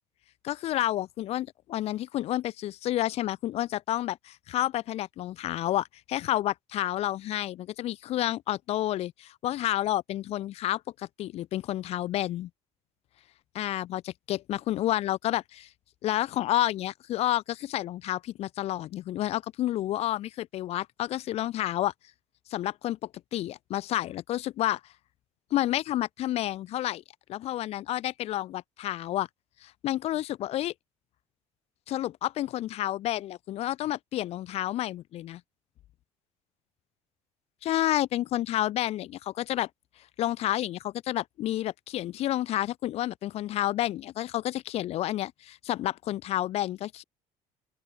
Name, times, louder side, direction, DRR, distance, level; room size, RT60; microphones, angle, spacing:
voice 1, 0.4-12.5 13.6-15.7 16.0-21.9 22.5-24.8 25.5-27.0 27.3-29.3 29.6-30.7 31.9-35.4 37.6-39.7 40.2-47.0, left 14 dB, 50° left, 0.9 m, -30 dB
open air
cardioid pair, 140°, 13 cm